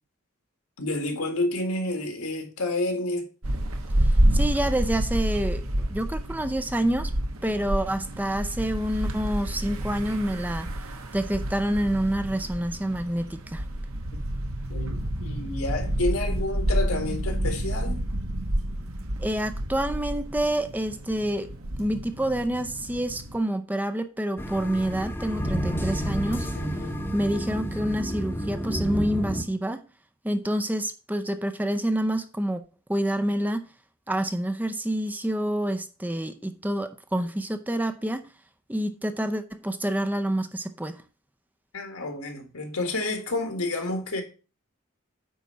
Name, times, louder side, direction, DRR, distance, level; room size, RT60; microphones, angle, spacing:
voice 1, 0.8-3.3 14.1-14.2 14.7-18.0 26.5-27.0 41.7-44.2, left 2 dB, 80° left, 1.9 m, -30 dB
sound 1, 3.4-23.4, right 1 dB, 75° right, 1.2 m, -29 dB
voice 2, 4.0-5.6 5.9-7.1 7.4-10.7 11.1-13.6 19.2-21.5 21.8-26.5 27.1-29.9 30.2-32.6 32.9-33.7 34.1-38.3 38.7-41.0, right 1 dB, 10° right, 0.5 m, -27 dB
sound 2, 24.4-29.4, equal, 10° left, 0.9 m, -30 dB
9.3 x 4.1 x 5.4 m
head